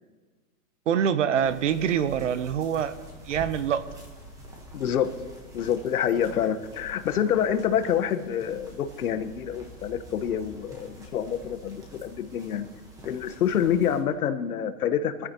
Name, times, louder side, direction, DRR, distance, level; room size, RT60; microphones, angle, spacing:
voice 1, 0.9-2.9 3.2-3.8, right 8 dB, 50° right, 14 dB, 0.8 m, -25 dB
sound 1, 1.4-14.0, equal, 5° right, 1.2 m, -46 dB
voice 2, 4.7-5.1 5.5-12.6 13.0-15.3, left 9 dB, 60° left, 10 dB, 1.3 m, -27 dB
23.5 x 14.5 x 3.0 m, 1.4 s
hypercardioid pair, 160°, 48 cm